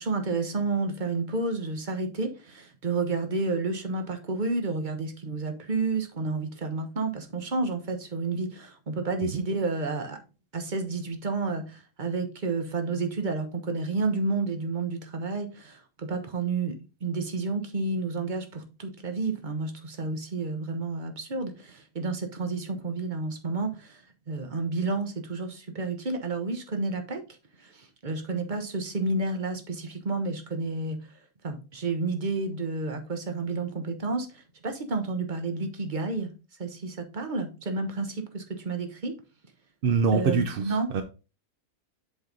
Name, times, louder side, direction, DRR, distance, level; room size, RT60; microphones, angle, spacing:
voice 1, 0.0-10.2 10.5-27.2 27.6-31.1 31.4-36.3 36.6-39.1 40.1-40.9, right 3 dB, 35° right, 1.1 m, -30 dB
voice 2, 39.8-41.0, right 5 dB, 60° right, 0.6 m, -25 dB
7.5 x 4.4 x 4.0 m
omnidirectional pair, 1.6 m